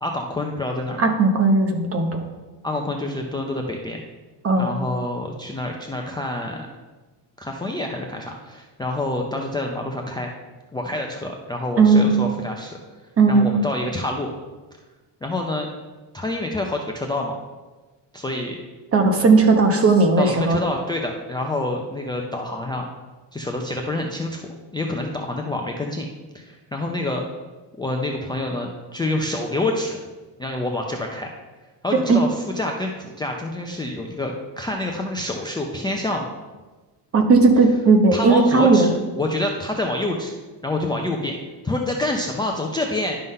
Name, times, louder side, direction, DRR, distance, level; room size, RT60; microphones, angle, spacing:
voice 1, 0.0-1.1 2.6-4.0 4.6-6.7 7.4-10.3 10.7-12.8 13.3-14.3 15.2-15.7 16.1-17.4 18.1-18.6 20.2-22.9 23.3-26.1 26.3-27.3 27.8-30.0 30.4-31.3 31.8-36.3 38.1-40.3 40.6-41.4 41.6-43.2, left 2 dB, 10° left, 1 dB, 0.4 m, -27 dB
voice 2, 1.0-2.2 4.4-4.7 11.8-12.1 13.2-13.6 18.9-20.6 32.1-32.2 37.1-38.9, right 3 dB, 30° right, 5 dB, 0.9 m, -16 dB
11.0 x 3.8 x 5.3 m, 1.3 s
cardioid pair, 155°, 43 cm